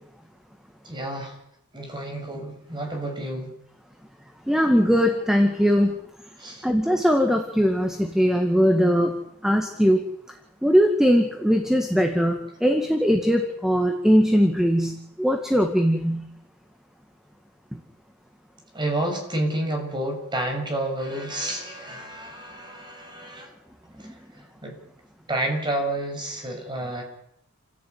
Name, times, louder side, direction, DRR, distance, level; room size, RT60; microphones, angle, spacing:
voice 1, 0.8-1.4 1.7-3.5 6.4-6.6 18.7-23.5 24.6-24.7 25.3-27.0, right 1 dB, 20° right, 2 dB, 6.9 m, -29 dB
voice 2, 4.5-6.0 6.6-9.2 9.4-10.0 10.6-16.3 17.7-17.8 24.0-24.1, equal, ahead, 4 dB, 2.0 m, -20 dB
29.5 x 15.5 x 9.5 m, 0.75 s
head